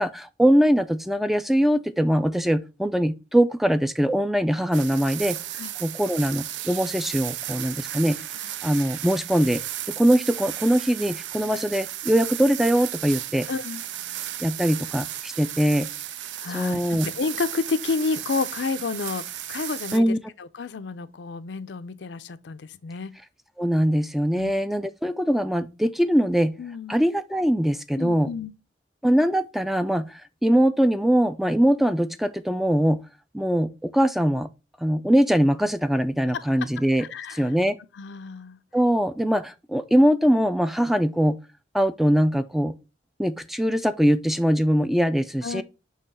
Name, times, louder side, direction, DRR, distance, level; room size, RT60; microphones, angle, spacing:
voice 1, 0.0-5.4 5.8-8.2 8.6-9.6 9.9-13.5 14.4-15.9 16.5-17.1 19.9-20.2 23.6-26.5 26.9-28.3 29.0-33.0 33.3-34.5 34.8-37.8 38.7-41.4 41.7-42.7 43.2-45.6, equal, ahead, 0.3 m, -22 dB
sound 1, 4.7-20.0, right 12 dB, 85° right, 0.5 m, -34 dB
voice 2, 13.5-13.8 16.4-23.1 24.4-24.5 26.6-27.0 27.9-28.5 36.3-36.4 37.0-37.5 38.0-38.6 45.4-45.6, left 4 dB, 75° left, 0.5 m, -30 dB
6.5 x 3.0 x 5.5 m
head